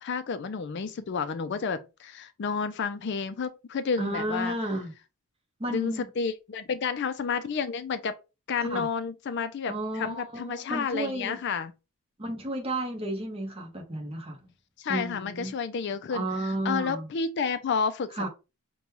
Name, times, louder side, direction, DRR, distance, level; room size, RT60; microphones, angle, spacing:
voice 1, 0.0-4.6 5.7-8.2 8.5-11.7 14.8-16.3 16.6-18.3, left 5 dB, 50° left, 0.4 m, -30 dB
voice 2, 4.0-4.9 5.6-6.1 8.6-8.9 9.7-11.4 12.2-14.5 14.9-15.5 16.1-17.1 18.2-18.3, right 1 dB, 25° right, 1.0 m, -32 dB
5.3 x 2.2 x 2.9 m
head